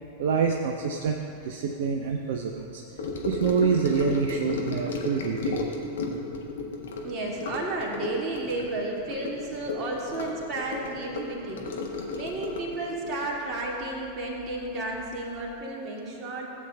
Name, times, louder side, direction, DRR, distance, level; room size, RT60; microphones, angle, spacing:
voice 1, 0.2-1.2 1.4-2.8 3.2-5.7, right 5 dB, 55° right, 2 dB, 0.5 m, -26 dB
Gurgling / Sink (filling or washing) / Trickle dribble, 3.0-14.6 14.9-15.2 15.5-15.6, left 3 dB, 60° left, 1.1 m, -34 dB
voice 2, 6.9-11.7 12.1-16.5, right 2 dB, 30° right, -3 dB, 2.0 m, -32 dB
16.0 x 8.4 x 2.3 m, 2.7 s
figure-of-eight pair, 90°, 0 cm